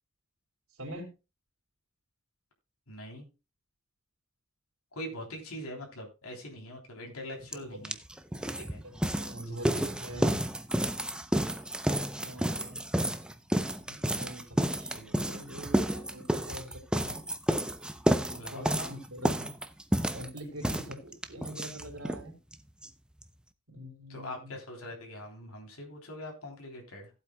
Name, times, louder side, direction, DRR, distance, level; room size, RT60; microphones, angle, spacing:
voice 1, 0.8-1.1 7.6-7.9 8.8-10.3 12.2-12.9 13.9-14.5 14.8-17.2 18.2-19.5 20.1-22.4 23.7-24.5, right 1 dB, 75° right, 4 dB, 4.1 m, -44 dB
voice 2, 2.9-3.3 4.9-7.9 8.4-8.8 18.3-19.0 24.1-27.1, left 1 dB, 90° left, 1 dB, 3.4 m, -42 dB
sound 1, 7.5-7.6 7.9-22.2 22.5-22.6 22.8-22.9 23.2-23.3, right 1 dB, 5° right, 0.6 m, -30 dB
17.5 x 8.1 x 2.3 m, 0.28 s
head